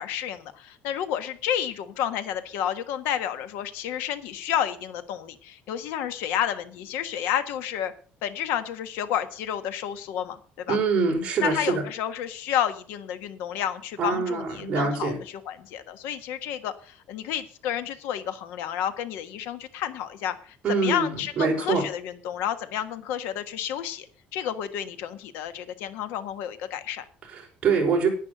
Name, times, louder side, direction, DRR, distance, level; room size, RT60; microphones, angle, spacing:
voice 1, 0.0-7.9 8.2-10.8 11.4-15.1 15.5-24.1 24.3-27.0, left 10 dB, 90° left, 10 dB, 1.5 m, -30 dB
voice 2, 10.7-11.9 14.0-15.2 20.6-21.9 27.2-28.1, right 4 dB, 30° right, -1 dB, 5.2 m, -25 dB
11.0 x 9.8 x 6.7 m, 0.43 s
cardioid pair, 155°, 3 cm